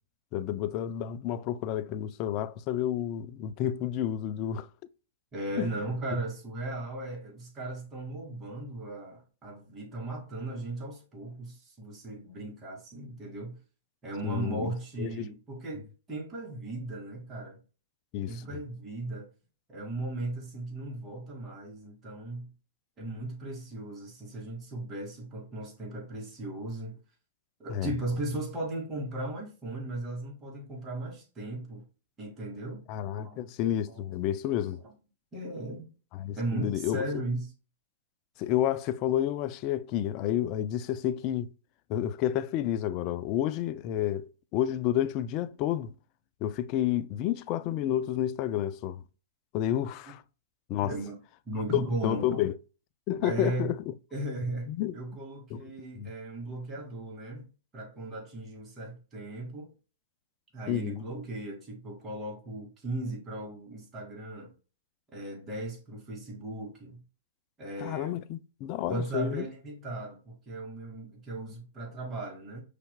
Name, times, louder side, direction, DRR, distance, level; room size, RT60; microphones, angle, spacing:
voice 1, 0.3-4.7 5.6-5.7 14.2-14.7 15.0-15.3 18.1-18.4 27.7-27.9 32.9-34.8 36.1-37.0 38.4-41.5 41.9-45.9 46.4-49.0 49.5-50.2 50.7-50.9 51.7-52.5 53.1-53.9 54.7-55.0 55.5-55.6 56.0-56.1 60.7-61.0 67.8-69.5, left 11 dB, 40° left, 0.4 m, -30 dB
voice 2, 5.3-13.6 14.0-17.6 18.2-19.3 19.7-22.5 23.0-27.0 27.6-31.8 32.2-32.8 33.2-33.4 33.9-34.0 34.8-34.9 35.3-35.9 36.4-37.5 50.8-51.2 51.5-52.2 53.2-53.7 54.1-57.5 57.7-59.7 60.5-64.5 65.1-67.0 67.6-68.2 68.9-72.6, right 2 dB, 20° right, 2.2 m, -37 dB
5.5 x 3.3 x 2.2 m
hypercardioid pair, 120°, 0 cm